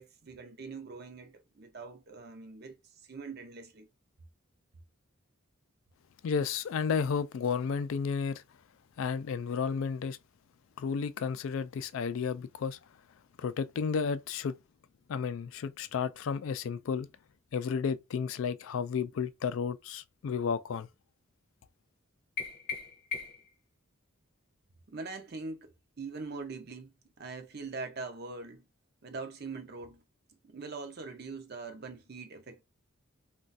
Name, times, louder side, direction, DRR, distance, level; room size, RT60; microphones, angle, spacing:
voice 1, 0.0-3.9 24.9-25.7 26.0-28.7 29.0-30.0 30.4-32.6, right 4 dB, 45° right, 0.6 m, -42 dB
voice 2, 6.2-8.4 9.0-10.2 10.8-12.8 13.4-14.5 15.1-17.1 17.5-20.9, left 6 dB, 70° left, 0.3 m, -32 dB
sound 1, 22.4-23.6, left 5 dB, 45° left, 0.8 m, -38 dB
2.4 x 2.3 x 3.9 m
head